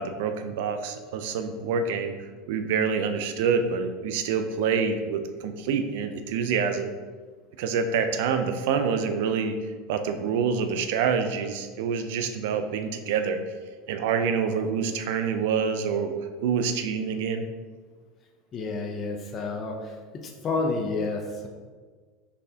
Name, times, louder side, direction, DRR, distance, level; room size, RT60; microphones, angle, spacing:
voice 1, 0.0-2.2 2.5-6.9 7.6-9.6 9.9-13.4 13.9-16.1 16.4-17.4, right 6 dB, 75° right, 8 dB, 0.4 m, -26 dB
voice 2, 18.5-21.5, left 3 dB, 35° left, 2 dB, 0.5 m, -30 dB
4.0 x 3.3 x 2.7 m, 1.5 s
supercardioid pair, 110°, 0 cm